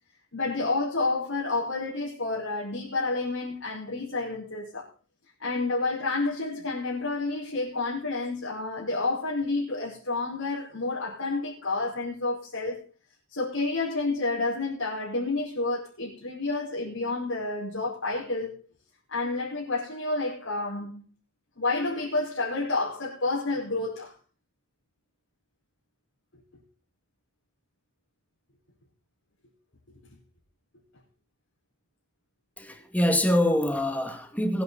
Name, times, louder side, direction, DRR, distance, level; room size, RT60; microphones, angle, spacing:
voice 1, 0.3-4.9 5.4-12.8 13.3-18.6 19.1-21.1 21.6-24.1, left 3 dB, 70° left, 5.2 m, -29 dB
voice 2, 32.6-34.6, left 1 dB, 5° left, 2.2 m, -25 dB
21.5 x 9.9 x 4.2 m
head